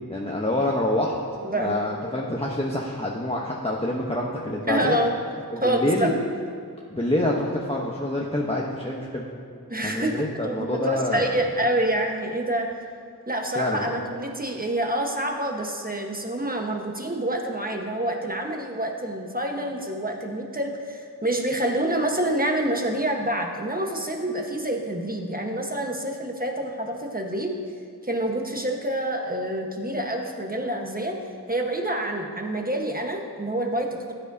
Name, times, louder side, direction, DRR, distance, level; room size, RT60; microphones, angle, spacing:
voice 1, 0.1-1.2 1.6-5.0 5.5-6.1 6.9-9.3 9.8-11.4 13.6-14.0, left 1 dB, 15° left, -3 dB, 0.9 m, -26 dB
voice 2, 1.4-1.8 2.1-2.2 4.7-5.1 5.6-6.1 9.7-12.7 13.3-27.5 28.0-31.2 31.5-34.1, right 1 dB, 20° right, 1 dB, 1.2 m, -27 dB
15.0 x 9.2 x 2.7 m, 2.4 s
wide cardioid pair, 45°, 39 cm